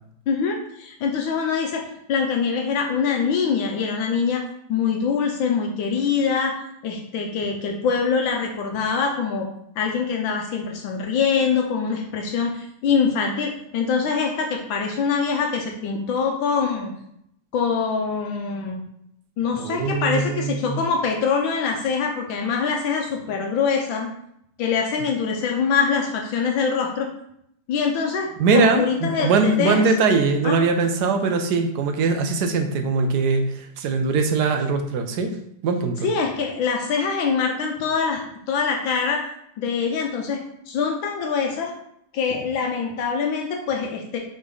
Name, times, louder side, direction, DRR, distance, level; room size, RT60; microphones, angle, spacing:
voice 1, 0.3-1.8 2.1-4.4 4.7-9.5 9.8-16.9 17.5-18.8 19.4-24.1 24.6-27.1 27.7-29.8 30.4-30.5 36.0-39.2 39.6-40.4 40.7-41.7 42.1-44.2, left 5 dB, 80° left, 2 dB, 1.5 m, -24 dB
voice 2, 19.5-20.8 28.4-35.4 35.6-36.1, right 4 dB, 65° right, 6 dB, 1.2 m, -21 dB
5.9 x 4.2 x 3.8 m, 0.74 s
omnidirectional pair, 2.1 m